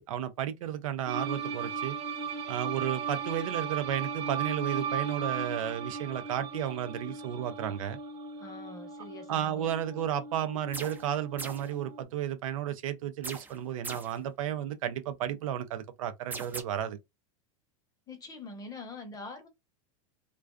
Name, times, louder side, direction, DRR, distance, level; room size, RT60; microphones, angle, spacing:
voice 1, 0.0-2.0 2.5-8.0 9.3-17.0, right 10 dB, 85° right, 0.5 m, -33 dB
sound 1, 1.1-12.0, right 6 dB, 35° right, 0.8 m, -37 dB
voice 2, 8.4-9.7 18.1-19.5, left 3 dB, 20° left, 0.8 m, -44 dB
sound 2, 10.7-11.1 11.4-11.7 13.2-14.2 16.3-16.6, right 3 dB, 10° right, 0.4 m, -40 dB
2.3 x 2.3 x 2.3 m
supercardioid pair, 120°, 17 cm